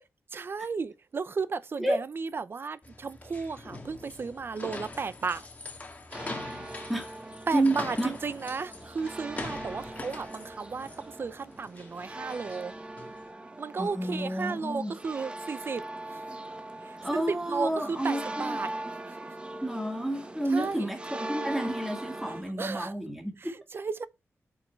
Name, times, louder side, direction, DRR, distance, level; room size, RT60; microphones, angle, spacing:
voice 1, 0.3-5.5 7.5-12.7 13.6-15.8 16.1-16.2 16.8-18.7 20.5-20.9 22.3-22.9 23.4-24.1, right 5 dB, 45° right, 0.7 m, -34 dB
sound 1, 2.8-13.2, left 2 dB, 30° left, 1.9 m, -43 dB
sound 2, 6.1-22.4, right 1 dB, 20° right, 1.1 m, -41 dB
voice 2, 7.5-8.1 13.8-15.0 17.0-18.6 19.6-23.5, right 1 dB, ahead, 2.0 m, -30 dB
8.5 x 5.8 x 4.5 m
wide cardioid pair, 150°, 5 cm